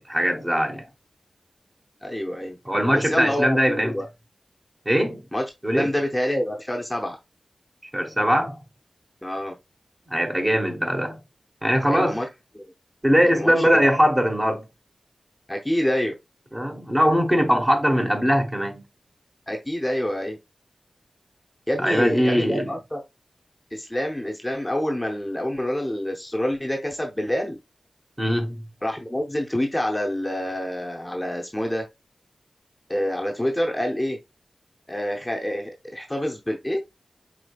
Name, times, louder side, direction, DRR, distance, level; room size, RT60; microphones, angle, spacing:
voice 1, 0.1-0.9 2.6-4.0 4.8-5.2 5.6-5.9 7.9-8.6 10.1-11.2 11.6-12.2 13.0-14.6 16.5-18.8 21.8-22.7 28.2-28.6, equal, 20° right, 1.1 m, -21 dB
voice 2, 2.0-2.6 2.9-4.1 5.3-5.4 5.7-7.2 9.2-9.5 11.8-12.3 12.6-12.7 13.2-13.8 15.5-16.1 19.5-20.4 21.7-23.0 23.7-27.6 28.8-31.9 32.9-34.2 34.9-36.8, left 1 dB, 10° left, 0.7 m, -27 dB
4.9 x 3.7 x 2.3 m
wide cardioid pair, 70°, 0 cm